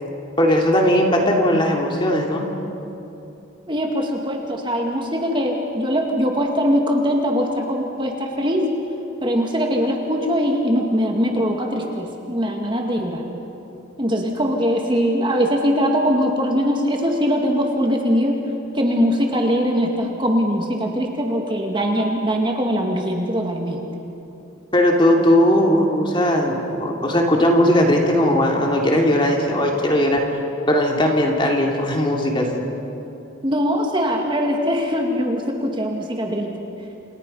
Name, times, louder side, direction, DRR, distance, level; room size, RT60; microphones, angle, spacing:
voice 1, 0.4-2.5 24.7-30.2 30.7-32.6, left 1 dB, 25° left, 1 dB, 2.7 m, -18 dB
voice 2, 3.7-8.7 9.2-13.2 14.0-18.4 18.7-23.8 33.4-36.5, equal, 25° right, 1 dB, 2.2 m, -21 dB
29.0 x 28.5 x 5.6 m, 3.0 s
head